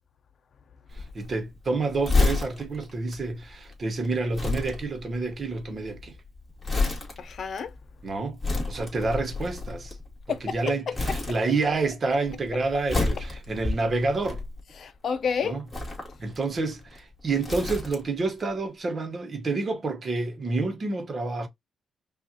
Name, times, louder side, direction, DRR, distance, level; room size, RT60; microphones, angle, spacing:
Crumpling crinkling, 0.9-10.6 10.9-11.9 12.2-14.9 15.6-18.3 18.6-18.7, left 3 dB, 20° left, 2.1 m, -30 dB
voice 1, 0.9-6.2 8.0-8.4 8.7-10.0 10.4-14.4 15.4-15.6 16.2-21.5, right 3 dB, 40° right, 1.0 m, -28 dB
voice 2, 7.2-7.7 10.3-10.9 14.8-15.6, left 6 dB, 55° left, 0.6 m, -30 dB
5.2 x 2.5 x 2.8 m
cardioid pair, 105°, 0 cm